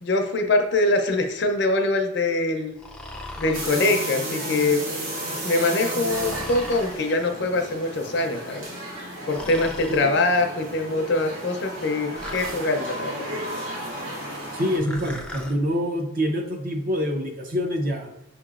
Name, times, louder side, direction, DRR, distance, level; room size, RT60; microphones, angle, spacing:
voice 1, 0.0-2.7 3.4-4.8 5.4-8.7 9.3-13.3, left 2 dB, 55° left, 5 dB, 0.5 m, -23 dB
Breathing, 2.8-3.7 6.1-7.0 9.3-10.1 12.2-12.7 14.8-15.6, left 1 dB, 5° left, 0.3 m, -38 dB
sound 1, 3.5-14.8, right 1 dB, 85° right, 1.3 m, -33 dB
voice 2, 9.9-10.2 14.5-18.1, equal, 45° right, 4 dB, 0.6 m, -26 dB
6.3 x 3.0 x 2.4 m, 0.95 s
head